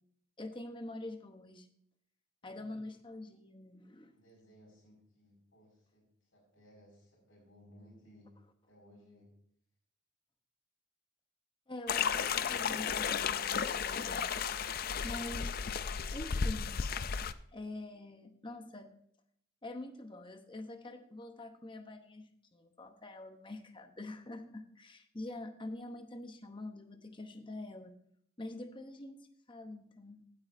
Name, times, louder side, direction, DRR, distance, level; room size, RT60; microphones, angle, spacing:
voice 1, 0.4-1.7 2.4-4.2 11.7-14.2 15.0-15.7 16.1-16.7 17.5-18.9 19.6-27.9 28.4-30.3, left 2 dB, 25° left, 7 dB, 0.9 m, -45 dB
voice 2, 2.4-2.9 4.1-8.3 8.7-9.3, equal, 85° left, -7 dB, 4.8 m, -61 dB
sound 1, 11.9-17.3, left 6 dB, 45° left, 0.4 m, -34 dB
16.5 x 8.6 x 2.6 m, 0.68 s
head